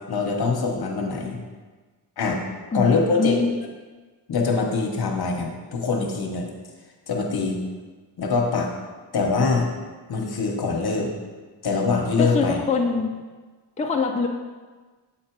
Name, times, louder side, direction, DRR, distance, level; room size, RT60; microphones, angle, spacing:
voice 1, 0.1-1.4 2.2-2.5 2.7-3.4 4.3-6.5 7.1-7.6 8.2-8.7 9.1-9.7 10.1-11.1 11.6-12.6, left 4 dB, 65° left, 2 dB, 1.1 m, -23 dB
voice 2, 2.7-3.5 12.2-13.2 13.8-14.3, left 4 dB, 15° left, 2 dB, 0.5 m, -24 dB
7.4 x 4.3 x 4.6 m, 1.4 s
wide cardioid pair, 105°, 42 cm